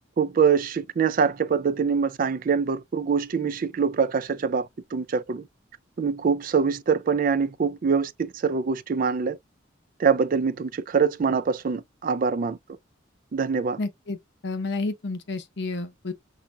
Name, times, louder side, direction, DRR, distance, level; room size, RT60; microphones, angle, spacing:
voice 1, 0.2-5.5 6.0-9.4 10.0-12.6 13.3-13.8, right 6 dB, 45° right, 0.4 m, -24 dB
voice 2, 13.8-14.2 14.4-16.1, left 3 dB, 60° left, 0.8 m, -30 dB
5.7 x 2.6 x 2.2 m
head